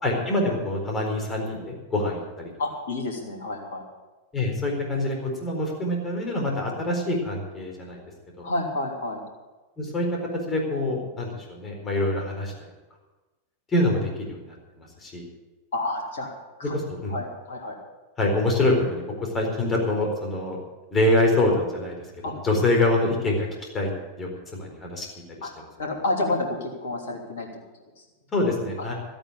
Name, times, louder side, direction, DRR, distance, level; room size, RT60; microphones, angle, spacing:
voice 1, 0.0-2.5 4.3-8.0 8.4-8.5 9.8-10.1 10.5-12.5 13.7-15.2 16.7-17.1 18.2-20.6 20.9-22.0 22.4-23.5 23.7-23.9 24.2-25.1 25.4-25.5 28.3-28.9, left 1 dB, 20° left, 0 dB, 4.3 m, -25 dB
voice 2, 2.6-3.8 8.4-9.2 15.7-16.3 16.6-16.8 17.1-17.7 22.2-22.3 25.4-25.5 25.8-27.5 28.0-28.1 28.8-28.9, left 2 dB, 60° left, 1 dB, 3.3 m, -29 dB
14.0 x 8.8 x 8.6 m, 1.2 s
figure-of-eight pair, 90°, 0 cm